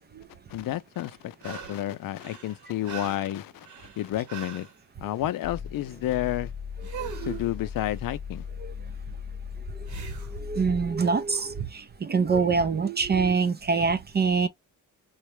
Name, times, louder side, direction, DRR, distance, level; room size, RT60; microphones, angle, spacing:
voice 1, 0.5-3.7 4.0-4.7 5.0-6.5 7.3-8.4, left 14 dB, 75° left, 0.5 m, -30 dB
sound 1, 0.9-1.9 2.2-4.8 6.8-7.5 9.8-10.4 13.3-13.4, right 6 dB, 60° right, 1.0 m, -41 dB
sound 2, 5.4-11.0, left 6 dB, 10° left, 1.0 m, -38 dB
voice 2, 7.0-7.4 8.6-8.7 10.4-11.7 12.0-14.5, right 5 dB, 30° right, 0.4 m, -24 dB
3.9 x 2.2 x 3.1 m
cardioid pair, 130°, 34 cm